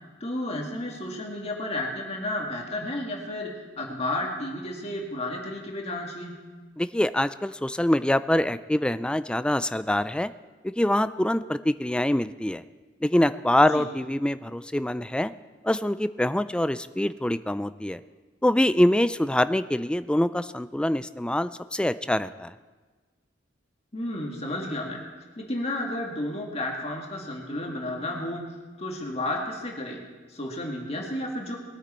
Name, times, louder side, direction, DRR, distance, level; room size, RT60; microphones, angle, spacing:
voice 1, 0.2-3.5 3.8-6.3 13.7-13.9 23.9-25.0 25.4-28.4 28.8-30.0 30.3-31.6, left 1 dB, 35° left, 0 dB, 2.0 m, -32 dB
voice 2, 6.8-10.3 10.6-12.6 13.0-15.3 15.6-18.0 18.4-22.5, left 1 dB, 5° left, 13 dB, 0.3 m, -24 dB
21.5 x 9.2 x 4.4 m, 1.3 s
head